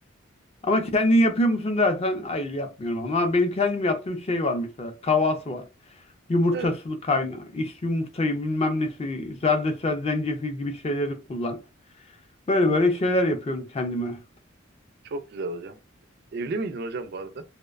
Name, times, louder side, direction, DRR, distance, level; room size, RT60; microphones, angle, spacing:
voice 1, 0.6-5.6 6.3-11.6 12.5-14.2, left 2 dB, 30° left, 0.4 m, -24 dB
voice 2, 15.0-15.8 16.3-17.4, right 3 dB, 50° right, 0.3 m, -32 dB
2.5 x 2.1 x 2.3 m
head